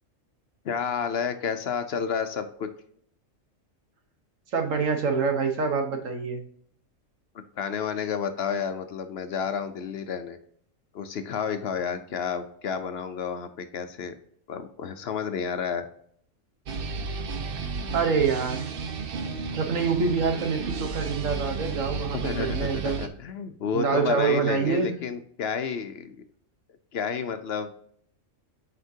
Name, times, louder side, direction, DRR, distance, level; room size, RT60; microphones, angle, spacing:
voice 1, 0.6-2.7 7.6-10.4 10.9-14.1 14.5-15.8 22.1-26.2 26.9-27.7, left 6 dB, 60° left, 9 dB, 0.8 m, -30 dB
voice 2, 4.5-6.4 17.9-18.7 19.5-23.0 23.7-24.9, right 5 dB, 85° right, 5 dB, 1.5 m, -26 dB
sound 1, 16.7-23.1, right 4 dB, 55° right, 0.8 m, -32 dB
8.0 x 5.1 x 2.7 m, 0.63 s
omnidirectional pair, 1.3 m